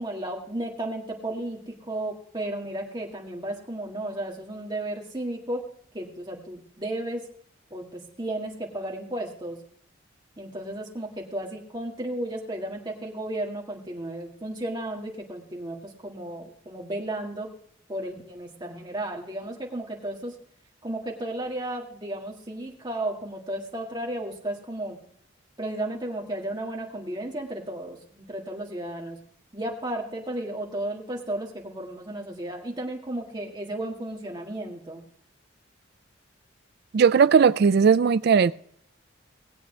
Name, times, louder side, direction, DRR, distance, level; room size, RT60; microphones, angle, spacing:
voice 1, 0.0-5.6 5.9-7.2 7.7-9.6 10.4-17.5 17.9-20.4 20.8-25.0 25.6-29.2 29.5-35.0, right 1 dB, 20° right, 1.7 m, -34 dB
voice 2, 36.9-38.5, right 6 dB, 55° right, 0.3 m, -18 dB
19.0 x 8.1 x 3.2 m
head